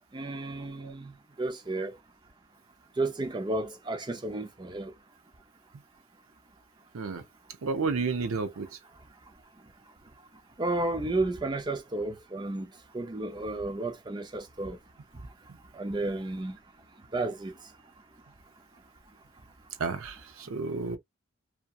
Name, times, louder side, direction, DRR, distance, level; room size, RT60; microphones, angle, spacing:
voice 1, 0.1-1.1 1.4-1.9 3.0-4.9 10.6-12.7 12.9-14.8 15.7-16.6 17.1-17.5, right 2 dB, 20° right, 0.4 m, -32 dB
voice 2, 7.6-8.7 19.8-21.0, right 4 dB, 85° right, 0.5 m, -31 dB
2.7 x 2.2 x 2.3 m
head